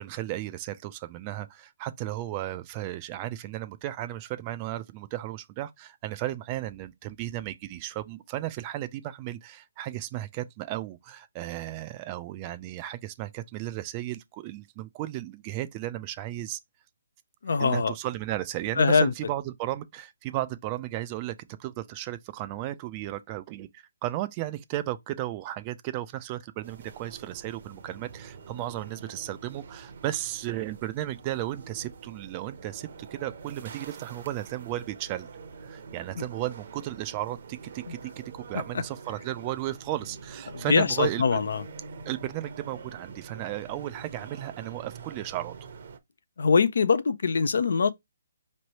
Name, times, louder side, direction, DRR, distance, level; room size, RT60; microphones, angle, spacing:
voice 1, 0.0-16.6 17.6-35.3 35.6-41.4 42.1-45.6, right 14 dB, 25° right, 0.4 m, -34 dB
voice 2, 17.4-17.9 18.8-19.1 36.2-36.3 37.9-38.0 40.5-41.6 46.4-47.9, left 5 dB, 70° left, 0.5 m, -23 dB
sound 1, 26.6-46.0, right 5 dB, 50° right, 0.8 m, -45 dB
5.2 x 3.2 x 2.8 m
hypercardioid pair, 160°, 0 cm